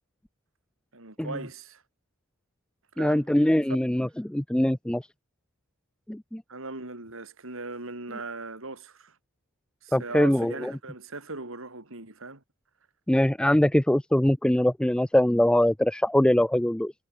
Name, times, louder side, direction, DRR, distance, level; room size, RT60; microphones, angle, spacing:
voice 1, 0.9-1.8 2.9-3.3 6.5-9.2 9.8-12.4, right 3 dB, 65° right, 3.7 m, -39 dB
voice 2, 3.0-5.1 6.1-6.4 9.9-10.7 13.1-16.9, left 1 dB, 5° left, 0.4 m, -23 dB
head